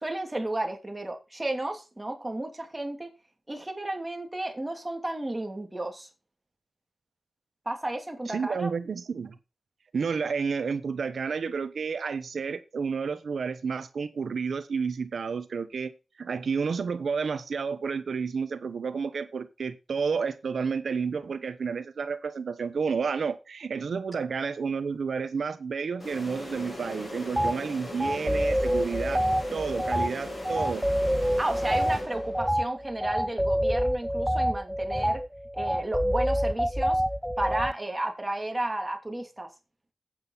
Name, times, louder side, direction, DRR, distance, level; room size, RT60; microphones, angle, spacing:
voice 1, 0.0-3.1 3.5-6.1 7.7-8.7 31.4-35.2 35.5-37.0 37.4-39.5, right 1 dB, 20° right, 2.6 m, -32 dB
voice 2, 8.3-9.3 9.9-15.9 16.2-29.2 29.5-30.8, right 5 dB, 80° right, 1.1 m, -31 dB
sound 1, 26.0-32.7, left 1 dB, 45° left, 5.6 m, -39 dB
sound 2, 27.4-27.5 28.0-37.7, equal, ahead, 0.4 m, -27 dB
9.0 x 7.7 x 4.1 m
wide cardioid pair, 70°, 0 cm